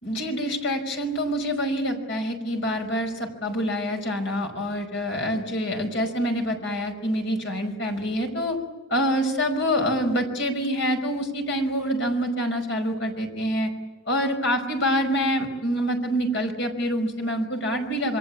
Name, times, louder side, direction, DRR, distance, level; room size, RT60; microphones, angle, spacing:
voice 1, 0.0-8.6 8.9-13.7 14.1-18.2, equal, 65° left, 4 dB, 5.3 m, -26 dB
27.5 x 23.0 x 8.7 m, 1.2 s
head